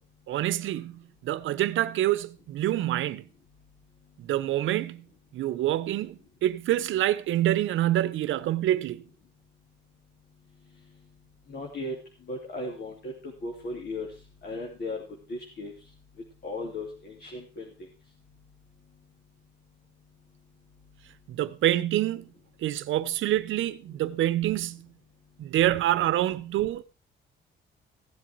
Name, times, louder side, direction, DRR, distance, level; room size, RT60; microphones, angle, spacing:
voice 1, 0.3-3.2 4.2-5.0 5.3-9.0 21.3-22.3 22.6-24.9 25.4-26.8, right 13 dB, 80° right, 0.9 m, -26 dB
voice 2, 11.5-12.0 12.3-14.1 14.4-15.0 15.3-15.7 16.4-17.7, left 2 dB, 50° left, 2.9 m, -36 dB
16.0 x 7.9 x 4.6 m
cardioid pair, 90°, 20 cm